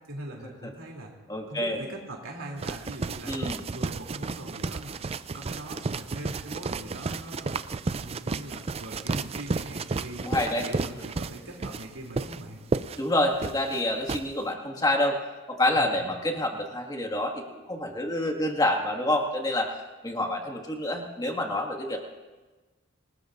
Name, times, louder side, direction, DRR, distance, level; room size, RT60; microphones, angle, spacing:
voice 1, 0.1-1.1 1.5-5.0 5.3-7.6 7.9-12.6 15.7-16.1, right 1 dB, 85° right, -1 dB, 3.1 m, -41 dB
voice 2, 1.3-1.8 3.3-3.6 10.2-10.7 13.0-15.2 15.5-19.7 20.0-22.1, left 1 dB, 20° left, 2 dB, 1.9 m, -27 dB
sound 1, 2.6-14.2, right 4 dB, 30° right, 0.4 m, -32 dB
27.0 x 19.5 x 2.6 m, 1.2 s
head